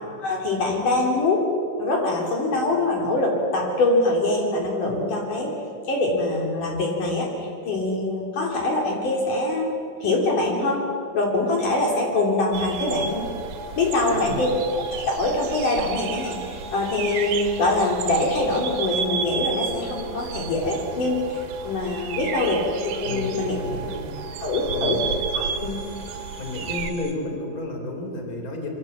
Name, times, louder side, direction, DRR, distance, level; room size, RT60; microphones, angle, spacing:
voice 1, 0.2-1.4 1.8-5.5 5.9-10.9 11.1-13.3 13.8-14.6 14.9-23.6 24.4-25.0 25.3-25.8, left 2 dB, 60° left, -1 dB, 4.8 m, -24 dB
sound 1, 11.4-27.1, right 5 dB, 40° right, 3.5 m, -41 dB
sound 2, 12.5-26.9, right 6 dB, 80° right, 3.5 m, -33 dB
voice 2, 14.0-14.5 23.0-24.1 24.6-25.0 26.4-28.7, left 2 dB, 25° left, 2 dB, 4.2 m, -32 dB
26.5 x 24.5 x 7.4 m, 2.5 s
omnidirectional pair, 4.2 m